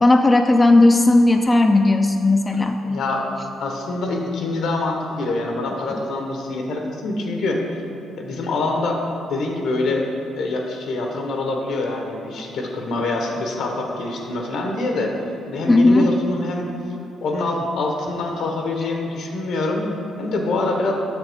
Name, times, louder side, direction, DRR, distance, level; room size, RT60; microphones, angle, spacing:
voice 1, 0.0-2.8 15.7-16.1, left 2 dB, 20° left, 5 dB, 0.3 m, -15 dB
voice 2, 2.8-3.3 3.6-7.8 8.2-9.0 9.3-10.1 10.4-15.1 15.5-16.7 17.2-19.8 20.2-20.9, left 2 dB, 75° left, 2 dB, 1.0 m, -25 dB
7.0 x 6.5 x 3.5 m, 2.6 s
cardioid pair, 90°, 0 cm